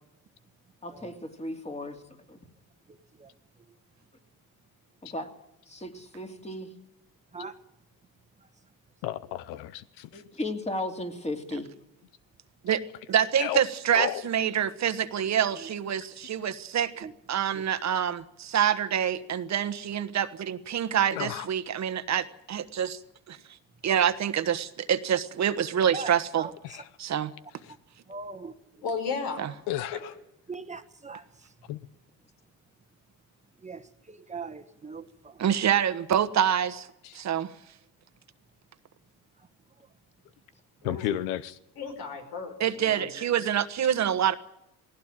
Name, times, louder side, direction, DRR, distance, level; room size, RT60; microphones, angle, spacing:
voice 1, 0.8-2.0 2.3-2.4 5.0-5.3 5.7-6.7 10.1-11.7, left 1 dB, 15° left, 2.8 m, -35 dB
voice 2, 2.9-3.3 7.3-7.6 17.0-17.1 17.5-17.6 21.2-21.3 25.9-26.5 28.1-28.5 30.5-31.2 33.6-35.4 40.8-40.9, right 4 dB, 20° right, 1.3 m, -41 dB
voice 3, 9.0-10.2 13.4-13.6 13.9-14.2 21.1-21.5 26.6-26.9 27.6-27.7 29.7-30.1 31.7-31.8 37.0-37.2 40.8-41.6 43.8-43.9, left 13 dB, 90° left, 0.9 m, -33 dB
voice 4, 13.1-23.0 23.3-23.4 23.8-26.5 27.0-27.3 29.4-29.5 35.4-36.9 37.1-37.5 42.6-44.3, right 9 dB, 45° right, 1.3 m, -26 dB
voice 5, 28.8-29.4 29.9-30.0 40.8-41.1 41.8-43.1, left 5 dB, 75° left, 5.7 m, -34 dB
18.5 x 16.0 x 8.9 m
cardioid pair, 100°, 38 cm